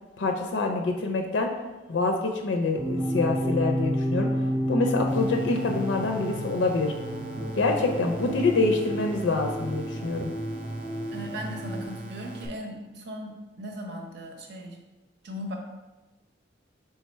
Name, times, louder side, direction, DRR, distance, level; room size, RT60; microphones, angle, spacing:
voice 1, 0.2-1.5 1.9-4.3 4.7-6.9 7.6-10.3, left 3 dB, 75° left, 2 dB, 0.5 m, -26 dB
sound 1, 2.8-11.9, equal, 15° right, 0.3 m, -31 dB
sound 2, 5.1-12.5, right 2 dB, 90° right, 0.6 m, -42 dB
voice 2, 11.1-14.8 15.2-15.5, equal, 60° right, 1 dB, 0.8 m, -38 dB
3.4 x 3.4 x 4.3 m, 1.1 s
head